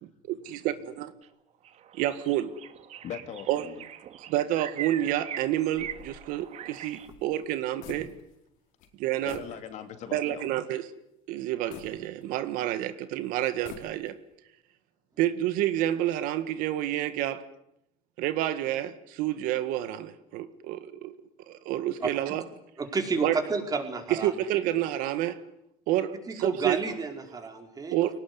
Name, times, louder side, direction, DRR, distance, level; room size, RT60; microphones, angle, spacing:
voice 1, 0.0-1.1 1.9-2.5 3.5-3.6 4.3-8.1 9.0-9.4 10.1-10.9 11.3-14.2 15.2-17.4 18.2-21.1 21.5-22.4 23.2-23.4 24.1-25.4 25.9-26.8 27.9-28.2, right 13 dB, 75° right, 12 dB, 1.8 m, -29 dB
sound 1, 1.2-1.3 1.6-7.1, right 11 dB, 50° right, 1.9 m, -42 dB
voice 2, 3.0-3.9 9.2-10.5, left 9 dB, 55° left, 8 dB, 3.0 m, -40 dB
sound 2, 5.7-8.5 8.8-8.9 9.3-9.6 10.1-10.2 11.7-12.7 13.4-14.3, left 7 dB, 75° left, 4.4 m, -48 dB
voice 3, 22.8-24.3 26.3-28.0, right 4 dB, 25° right, 4 dB, 4.8 m, -30 dB
23.5 x 19.0 x 9.8 m, 0.81 s
cardioid pair, 115°, 14 cm